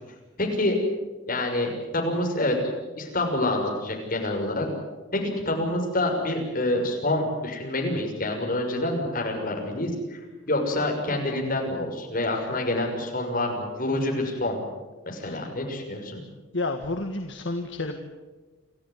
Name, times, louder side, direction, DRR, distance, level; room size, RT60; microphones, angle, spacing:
voice 1, 0.4-0.8 1.3-2.6 3.0-4.7 5.1-10.2 10.5-14.6 15.0-16.2, left 1 dB, 45° left, 1 dB, 6.5 m, -27 dB
voice 2, 16.5-18.0, left 2 dB, 65° left, 5 dB, 1.7 m, -30 dB
28.5 x 15.0 x 9.5 m, 1.2 s
head